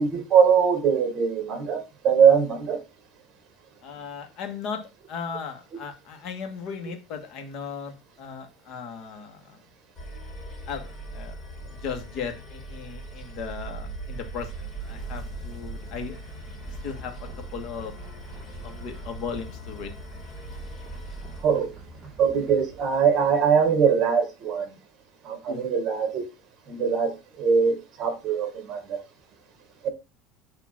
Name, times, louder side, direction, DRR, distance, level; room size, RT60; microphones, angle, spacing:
voice 1, 0.0-2.8 21.4-21.7 22.2-24.7 25.2-26.2 26.7-29.0 29.8-29.9, right 6 dB, 35° right, 1.7 m, -22 dB
voice 2, 3.8-4.8 5.1-9.6 10.7-11.4 11.6-16.2 16.7-17.9 18.6-19.9 25.5-25.6, left 6 dB, 45° left, 1.5 m, -37 dB
sound 1, 9.9-21.4, equal, 20° left, 2.2 m, -40 dB
sound 2, 12.9-23.7, right 4 dB, 10° right, 2.4 m, -43 dB
8.7 x 3.0 x 5.8 m
cardioid pair, 160°, 0 cm